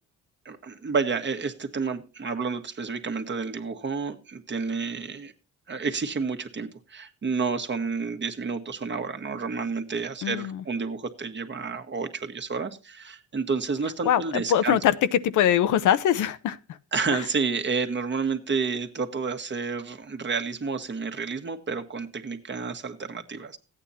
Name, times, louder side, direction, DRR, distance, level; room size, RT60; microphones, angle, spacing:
voice 1, 0.4-5.3 5.7-14.8 16.9-23.6, right 5 dB, 40° right, 7 dB, 1.5 m, -30 dB
voice 2, 10.2-10.6 14.0-16.8 17.1-17.3, left 10 dB, 80° left, 13 dB, 0.8 m, -23 dB
14.0 x 9.0 x 4.2 m, 0.32 s
cardioid pair, 90°, 30 cm